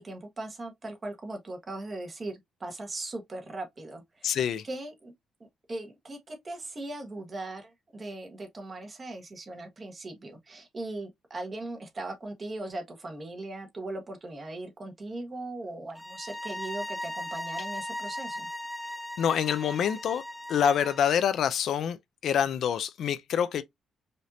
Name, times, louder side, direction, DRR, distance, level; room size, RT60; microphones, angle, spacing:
voice 1, 0.0-5.1 5.4-18.5, right 2 dB, 25° right, 1.2 m, -39 dB
voice 2, 4.2-4.6 19.2-20.2 20.5-22.0 22.2-23.6, left 8 dB, 65° left, 0.4 m, -26 dB
sound 1, 16.0-21.1, left 1 dB, ahead, 0.5 m, -38 dB
5.0 x 2.7 x 2.6 m
cardioid pair, 145°, 0 cm